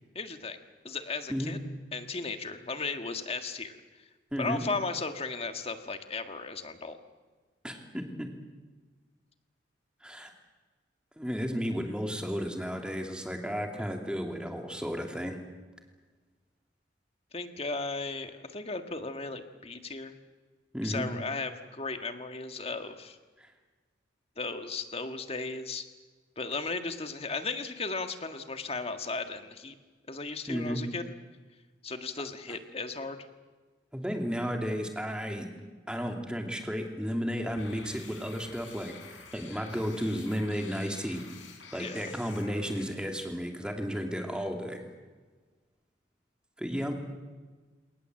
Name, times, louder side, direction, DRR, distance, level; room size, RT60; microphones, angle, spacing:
voice 1, 0.2-0.6 0.8-1.6 1.9-3.8 4.4-7.0 17.3-20.2 20.8-23.2 24.4-25.9 26.4-29.8 30.1-31.1 31.8-33.2 41.8-42.1, left 3 dB, 30° left, 7 dB, 1.7 m, -36 dB
voice 2, 4.3-4.6 7.6-8.3 10.0-10.3 11.2-15.4 20.7-21.1 30.5-30.8 33.9-35.5 35.9-41.2 41.7-44.8 46.6-46.9, equal, 5° right, 3 dB, 2.6 m, -33 dB
sound 1, 37.6-42.9, left 5 dB, 80° left, 4.6 m, -49 dB
30.0 x 19.0 x 7.7 m, 1.4 s
head